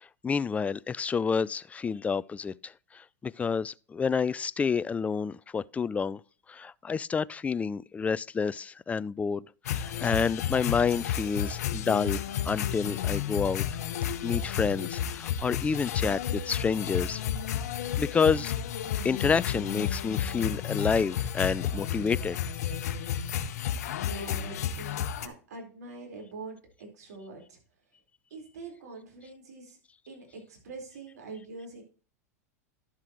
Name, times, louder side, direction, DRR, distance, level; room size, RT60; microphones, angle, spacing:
voice 1, 0.2-2.7 3.2-6.2 6.5-13.6 14.2-17.2 18.0-18.5 19.0-22.4, left 5 dB, 15° left, 0.4 m, -29 dB
sound 1, 9.7-25.3, left 9 dB, 75° left, 0.9 m, -32 dB
voice 2, 24.0-27.6 28.3-29.8 30.1-31.8, right 3 dB, 80° right, 4.2 m, -44 dB
11.5 x 7.4 x 3.0 m
hypercardioid pair, 100°, 9 cm